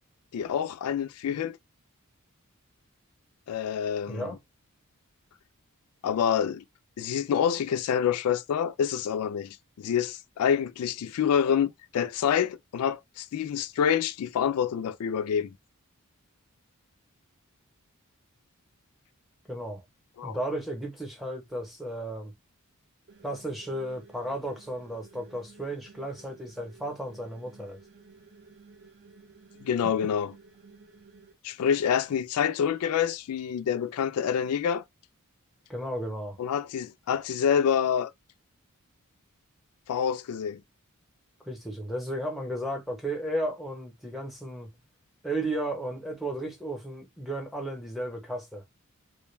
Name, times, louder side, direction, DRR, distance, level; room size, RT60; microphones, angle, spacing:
voice 1, 0.3-1.6 3.5-4.3 6.0-6.6 7.0-15.5 20.2-20.4 29.6-30.3 31.4-34.8 36.4-38.1 39.9-40.6, left 8 dB, 80° left, 0.3 m, -27 dB
voice 2, 4.1-4.4 19.5-19.8 20.2-22.3 23.2-27.8 29.8-29.9 35.7-36.4 41.4-44.8 45.2-48.6, right 1 dB, ahead, 0.8 m, -34 dB
sound 1, 23.1-31.3, right 4 dB, 50° right, 0.8 m, -54 dB
2.2 x 2.1 x 3.1 m
head